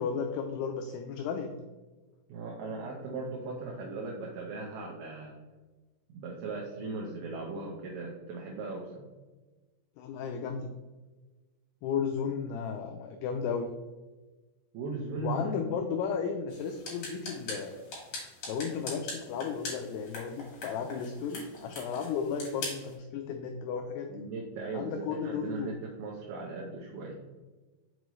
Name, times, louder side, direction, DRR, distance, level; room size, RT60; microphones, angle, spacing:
voice 1, 0.0-1.5 10.0-10.7 11.8-13.7 15.2-17.8 18.5-24.3 24.7-25.7, left 6 dB, 90° left, 5 dB, 2.3 m, -34 dB
voice 2, 2.3-5.4 6.1-9.1 14.7-15.6 24.1-27.2, right 3 dB, 75° right, -2 dB, 2.6 m, -38 dB
sound 1, 16.5-22.9, left 2 dB, 50° left, 2.9 m, -42 dB
6.4 x 5.3 x 3.1 m, 1.2 s
omnidirectional pair, 5.2 m